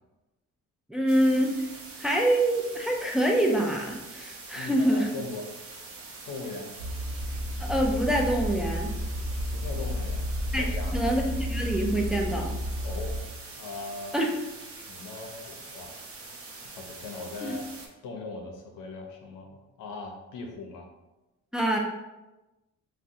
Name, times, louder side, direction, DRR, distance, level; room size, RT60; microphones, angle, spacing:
voice 1, 0.9-1.7 2.0-5.1 7.6-8.9 10.5-12.5 14.1-14.3 17.4-17.6 21.5-21.8, right 1 dB, ahead, 0 dB, 0.4 m, -26 dB
sound 1, 1.1-17.9, right 3 dB, 50° right, 0.7 m, -44 dB
voice 2, 4.6-5.5 6.3-6.7 9.5-10.3 10.6-11.0 12.8-13.2 13.6-14.1 14.7-15.9 16.6-17.7 18.0-20.9, left 3 dB, 80° left, 2 dB, 0.6 m, -39 dB
sound 2, 6.8-13.2, equal, 75° right, 0.8 m, -31 dB
3.6 x 2.1 x 2.6 m, 1.0 s
cardioid pair, 90°, 30 cm